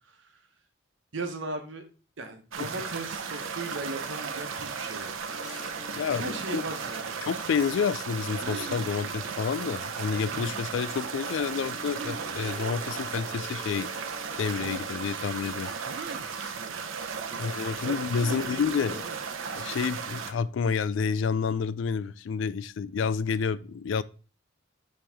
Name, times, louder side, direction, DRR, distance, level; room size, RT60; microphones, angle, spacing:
voice 1, 1.1-1.8 2.2-5.1 6.1-7.2 16.6-19.2, right 2 dB, 70° right, 1.1 m, -38 dB
sound 1, 2.5-20.3, right 6 dB, 85° right, 0.7 m, -35 dB
sound 2, 5.3-14.9, left 3 dB, 5° left, 1.0 m, -49 dB
voice 2, 6.0-6.6 7.2-13.9 14.4-15.7 16.4-16.5 17.4-19.0 19.6-24.0, left 6 dB, 70° left, 0.3 m, -29 dB
sound 3, 8.3-9.0 10.2-10.6 12.0-12.4 14.6-15.0 15.8-16.4, right 3 dB, 55° right, 0.4 m, -41 dB
8.8 x 3.2 x 3.4 m
head